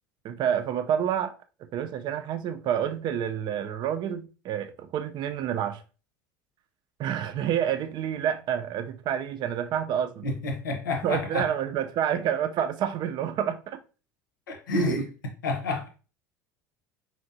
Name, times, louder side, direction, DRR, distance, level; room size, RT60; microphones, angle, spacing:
voice 1, 0.2-1.3 1.6-5.8 7.0-10.3 11.0-13.8, right 9 dB, 45° right, 0.5 m, -28 dB
voice 2, 10.2-11.5 14.5-15.1 15.4-15.9, left 2 dB, 80° left, 0.9 m, -29 dB
4.4 x 2.8 x 2.6 m
hypercardioid pair, 70°, 10 cm